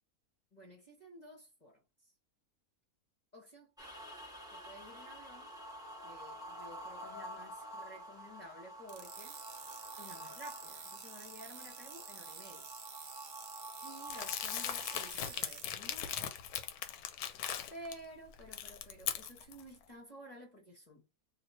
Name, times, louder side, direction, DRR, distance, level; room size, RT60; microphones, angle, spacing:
voice 1, 0.5-2.1 3.3-4.0 4.5-5.5 6.0-9.4 10.0-12.7 13.8-16.2 17.7-21.1, right 1 dB, 30° left, 1.3 m, -53 dB
sound 1, 3.8-15.1, equal, 5° right, 1.1 m, -49 dB
sound 2, 8.9-15.7, right 6 dB, 55° right, 0.9 m, -49 dB
Crumpling crinkling, 14.1-17.9 18.3-19.6, left 9 dB, 75° left, 1.1 m, -39 dB
3.1 x 2.7 x 4.3 m
omnidirectional pair, 1.6 m